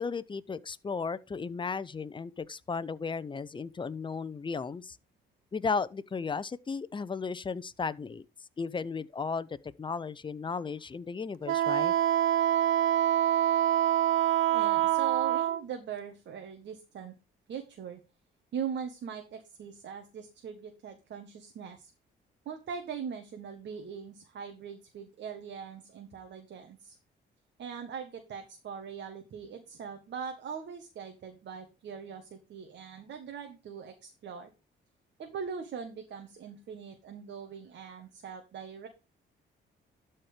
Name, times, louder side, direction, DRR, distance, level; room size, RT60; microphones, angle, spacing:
voice 1, 0.0-5.0 5.5-8.2 8.6-11.9, left 5 dB, 25° left, 0.7 m, -35 dB
Wind instrument woodwind instrument, 11.5-15.6, right 12 dB, 80° right, 0.6 m, -25 dB
voice 2, 14.5-17.1 17.5-18.0 18.5-21.9 22.4-27.0 27.6-34.5 35.2-38.9, right 7 dB, 65° right, 1.6 m, -41 dB
12.5 x 4.4 x 5.0 m
cardioid pair, 90°, 20 cm